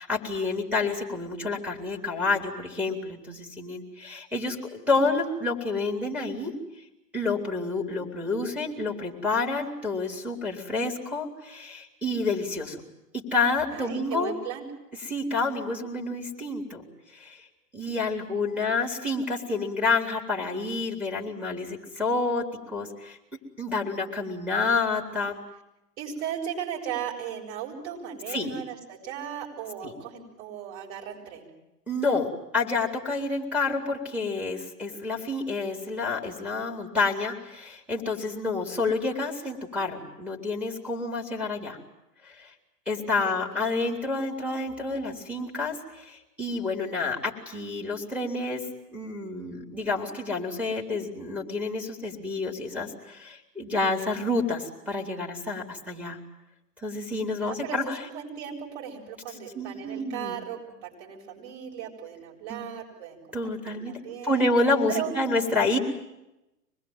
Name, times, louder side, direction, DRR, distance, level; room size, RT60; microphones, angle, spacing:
voice 1, 0.0-6.5 7.1-12.8 13.1-14.3 15.0-16.8 17.1-17.4 17.7-23.2 23.6-25.4 28.3-28.5 29.8-29.9 31.9-32.3 32.5-41.8 42.2-42.5 42.9-48.6 48.9-56.2 56.8-58.0 59.5-60.4 62.5-62.7 63.3-63.9 64.2-65.8, left 3 dB, 5° right, 2 dB, 4.0 m, -29 dB
voice 2, 13.7-14.7 18.2-18.6 26.0-31.5 43.2-43.6 57.4-64.5 64.9-65.1, right 9 dB, 40° right, 0 dB, 7.6 m, -37 dB
25.5 x 20.5 x 9.2 m, 0.93 s
figure-of-eight pair, 115°, 49 cm